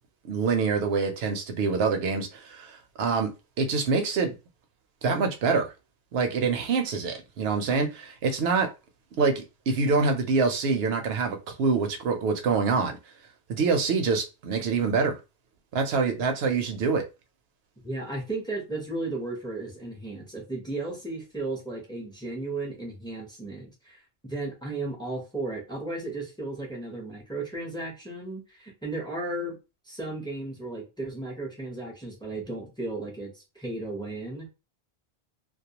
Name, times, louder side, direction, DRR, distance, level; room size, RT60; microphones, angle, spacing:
voice 1, 0.2-3.3 3.6-4.3 5.0-5.7 6.1-8.7 9.2-13.0 13.5-15.2 15.7-17.0, right 4 dB, 75° right, 0.8 m, -25 dB
voice 2, 17.8-29.6 29.9-34.5, right 2 dB, 5° left, 0.7 m, -35 dB
2.3 x 2.2 x 2.8 m
omnidirectional pair, 1.1 m